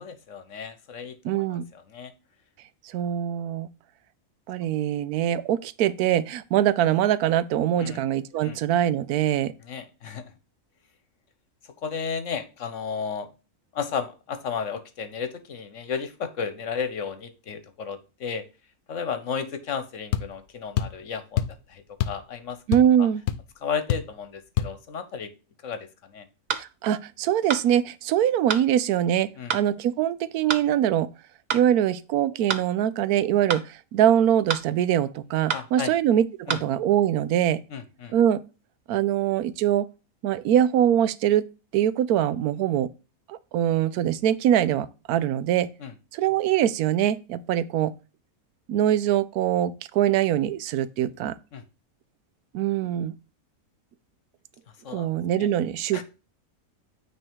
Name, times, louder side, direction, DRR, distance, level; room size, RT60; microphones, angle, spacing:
voice 1, 0.0-2.1 7.8-8.0 8.4-8.6 9.6-10.2 11.8-13.3 13.7-18.4 18.9-22.6 23.0-23.1 23.6-25.3 25.6-26.3 29.4-29.6 35.5-35.9 36.5-36.6 37.7-38.1 45.8-45.9 51.5-51.6 54.8-55.1 55.4-55.5 55.9-56.0, left 6 dB, 60° left, 1.2 m, -33 dB
voice 2, 1.2-1.6 2.8-3.7 4.5-9.5 22.7-23.2 26.5-31.1 31.5-37.6 38.1-38.4 38.9-39.9 40.2-41.4 41.7-42.9 43.3-45.7 46.1-47.9 48.7-51.4 52.5-53.1 54.9-56.0, right 10 dB, 85° right, 1.1 m, -23 dB
sound 1, 20.1-20.3 20.8-21.0 21.4-21.6 22.0-22.2 22.5-23.0 23.3-23.4 23.9-24.1 24.6-24.7, left 11 dB, 85° left, 1.1 m, -26 dB
sound 2, 26.5-26.7 27.5-27.7 28.5-28.7 29.5-29.7 30.5-30.7 31.5-31.7 32.5-32.7 33.5-33.7 34.5-34.7 35.5-35.7 36.5-36.7, right 6 dB, 50° right, 0.5 m, -28 dB
9.1 x 3.2 x 4.6 m
omnidirectional pair, 1.5 m